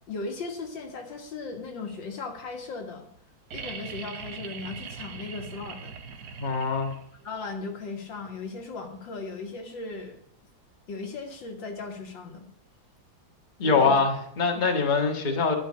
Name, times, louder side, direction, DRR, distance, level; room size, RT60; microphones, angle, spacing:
voice 1, 0.1-3.1 3.5-6.4 7.2-10.2 10.9-12.5 13.6-14.0, left 4 dB, 75° left, 4 dB, 2.3 m, -37 dB
sound 1, 3.5-7.3 9.0-9.1, right 6 dB, 60° right, 1.5 m, -40 dB
voice 2, 6.4-6.9 13.6-15.5, left 4 dB, 25° left, 3 dB, 1.5 m, -23 dB
11.5 x 6.0 x 8.6 m, 0.66 s
omnidirectional pair, 2.1 m